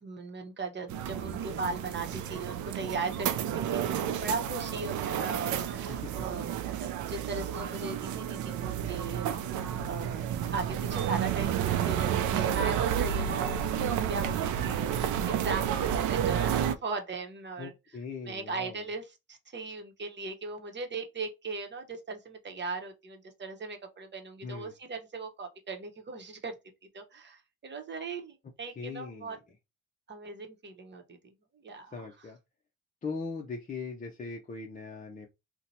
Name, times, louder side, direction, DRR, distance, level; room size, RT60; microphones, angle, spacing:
voice 1, 0.0-13.6 13.9-17.7 18.3-26.6 26.9-29.4 30.1-32.1, right 3 dB, 35° right, 1.0 m, -38 dB
sound 1, 0.9-16.7, right 9 dB, 75° right, 0.5 m, -31 dB
voice 2, 17.6-18.8 24.4-24.7 28.8-29.4 31.9-32.4 33.0-35.3, left 4 dB, 25° left, 0.6 m, -39 dB
2.8 x 2.2 x 3.9 m
cardioid pair, 90°, 30 cm